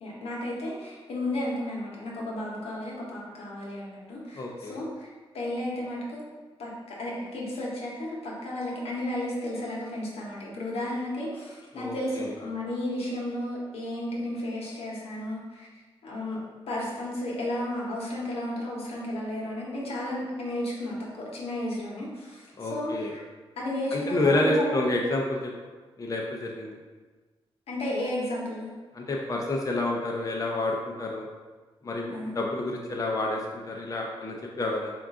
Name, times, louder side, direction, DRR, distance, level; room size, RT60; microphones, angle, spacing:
voice 1, 0.0-6.2 6.6-15.7 16.0-16.4 16.7-23.1 23.6-24.9 27.7-28.7 32.1-32.4, left 1 dB, 80° left, -4 dB, 0.9 m, -33 dB
voice 2, 4.4-4.8 11.7-12.3 22.6-23.1 23.9-25.5 26.0-26.8 28.9-31.3 31.8-34.9, left 2 dB, 35° left, -1 dB, 0.5 m, -29 dB
3.7 x 2.4 x 3.6 m, 1.3 s
cardioid pair, 75°, 10 cm